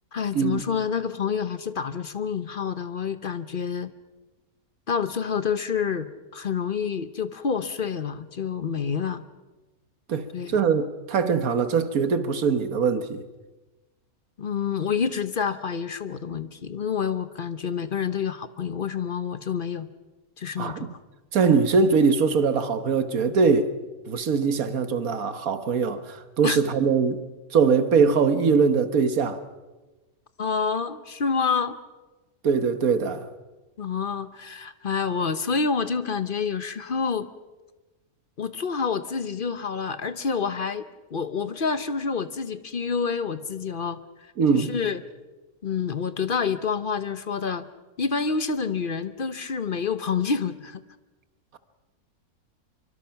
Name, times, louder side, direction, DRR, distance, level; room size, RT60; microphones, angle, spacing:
voice 1, 0.1-3.9 4.9-9.2 10.3-10.6 14.4-19.9 20.4-20.9 26.4-26.6 30.4-31.8 33.8-37.3 38.4-45.0 45.6-47.7 48.0-50.8, left 6 dB, 45° left, 0.9 m, -28 dB
voice 2, 10.1-13.2 20.6-20.9 21.3-23.7 24.1-27.2 27.5-29.4 32.4-33.3 44.4-44.7, right 5 dB, 70° right, 1.6 m, -22 dB
24.5 x 24.5 x 5.8 m
omnidirectional pair, 1.6 m